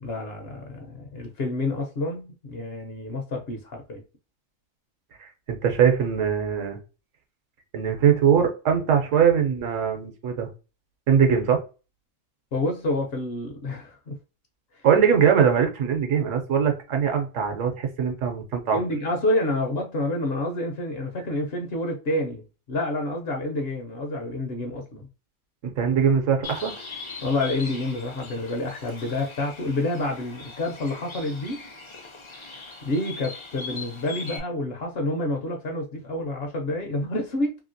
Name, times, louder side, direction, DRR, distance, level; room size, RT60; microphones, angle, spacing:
voice 1, 0.0-4.0 12.5-14.2 14.7-14.8 18.7-22.4 22.7-25.1 27.2-31.6 32.8-37.6, left 2 dB, 55° left, 0.8 m, -28 dB
voice 2, 5.2-6.8 7.7-10.5 11.1-11.6 14.8-18.8 25.6-26.7, right 7 dB, 75° right, 1.1 m, -21 dB
Bird, 26.4-34.4, left 4 dB, 35° left, 0.5 m, -40 dB
2.9 x 2.8 x 2.6 m
omnidirectional pair, 1.4 m